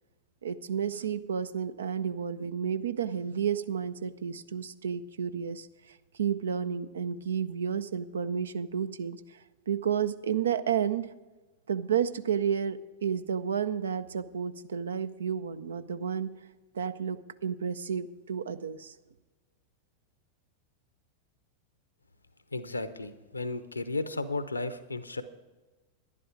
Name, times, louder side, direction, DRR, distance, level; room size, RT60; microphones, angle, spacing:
voice 1, 0.4-9.4 9.7-11.1 11.7-16.3 16.7-18.9, right 7 dB, 70° right, 13 dB, 0.5 m, -31 dB
voice 2, 22.5-25.2, left 2 dB, 80° left, 12 dB, 0.8 m, -34 dB
11.0 x 11.0 x 4.8 m, 1.2 s
figure-of-eight pair, 90°, 0 cm